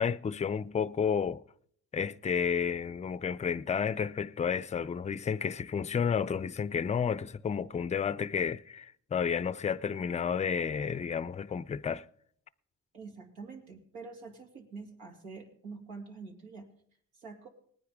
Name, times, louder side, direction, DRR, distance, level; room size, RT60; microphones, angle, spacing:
voice 1, 0.0-1.4 1.9-12.0, left 7 dB, 20° left, 0.4 m, -31 dB
voice 2, 12.9-16.7 17.2-17.5, right 4 dB, 90° right, 2.8 m, -46 dB
19.5 x 9.9 x 3.6 m
supercardioid pair, 75°, 35 cm